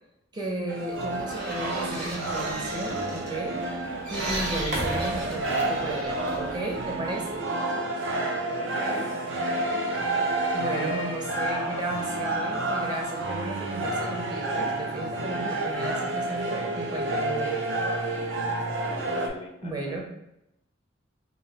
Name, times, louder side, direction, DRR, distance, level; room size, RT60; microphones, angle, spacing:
voice 1, 0.3-3.6 4.1-7.4 10.5-17.6 19.6-20.0, right 2 dB, 20° right, 0 dB, 0.6 m, -34 dB
sound 1, 0.7-19.3, right 2 dB, 80° right, 0.6 m, -29 dB
sound 2, 0.9-7.4, right 1 dB, 65° right, 1.0 m, -36 dB
voice 2, 8.5-10.4 18.5-20.0, left 1 dB, 30° left, 2 dB, 0.4 m, -43 dB
3.1 x 2.4 x 4.0 m, 0.82 s
head